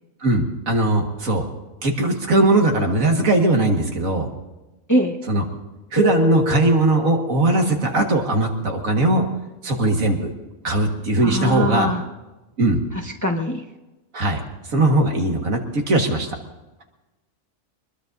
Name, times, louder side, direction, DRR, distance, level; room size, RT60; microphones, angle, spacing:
voice 1, 0.2-1.5 1.8-4.3 5.3-5.4 5.9-9.3 9.6-10.3 10.6-11.9 12.6-12.8 14.1-14.4 14.7-16.4, right 2 dB, 80° right, 2 dB, 2.1 m, -19 dB
Keyboard (musical), 6.0-8.0, left 5 dB, 75° left, 1.4 m, -29 dB
voice 2, 11.2-12.0 13.0-13.6, equal, 15° left, 1 dB, 1.0 m, -22 dB
24.0 x 21.0 x 2.7 m, 1.1 s
omnidirectional pair, 1.4 m